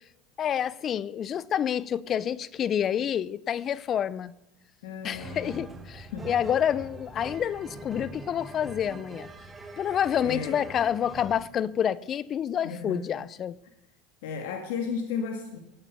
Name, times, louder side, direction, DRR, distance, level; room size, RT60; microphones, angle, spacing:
voice 1, 0.4-4.3 5.0-9.3 9.8-13.6, left 9 dB, 40° left, 0.7 m, -28 dB
voice 2, 4.8-5.7 6.1-6.3 9.8-10.0 10.2-10.6 12.6-13.1 14.2-15.6, left 5 dB, 75° left, 2.1 m, -34 dB
sound 1, 5.2-11.5, right 2 dB, 15° right, 2.5 m, -43 dB
19.0 x 9.3 x 6.9 m
hypercardioid pair, 95°, 0 cm